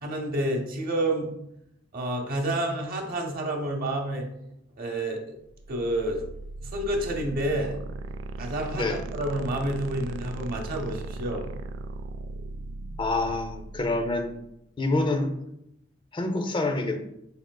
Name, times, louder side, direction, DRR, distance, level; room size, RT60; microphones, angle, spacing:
voice 1, 0.0-1.3 1.9-4.3 4.8-5.2 5.7-6.2 6.7-7.8 8.4-11.5, right 1 dB, 50° right, 1 dB, 0.7 m, -29 dB
sound 1, 5.6-14.4, right 2 dB, 80° right, 0.3 m, -38 dB
voice 2, 13.0-14.4 14.8-15.3 16.1-17.0, left 2 dB, 25° left, 6 dB, 0.4 m, -26 dB
4.5 x 3.7 x 2.2 m, 0.80 s
head